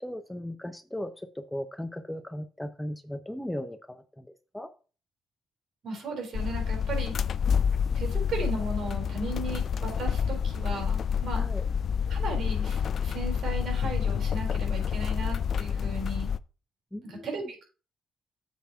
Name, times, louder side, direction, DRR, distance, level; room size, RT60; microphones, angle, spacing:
voice 1, 0.0-4.3 4.5-4.7 11.3-11.6 16.9-17.4, left 1 dB, 5° left, 10 dB, 0.6 m, -37 dB
voice 2, 5.8-7.2 7.9-11.5 12.1-16.3 17.0-17.4, right 3 dB, 60° right, 2 dB, 4.0 m, -36 dB
sound 1, 6.3-16.4, left 7 dB, 55° left, 0.3 m, -28 dB
7.6 x 4.2 x 5.6 m, 0.36 s
cardioid pair, 90°, 0 cm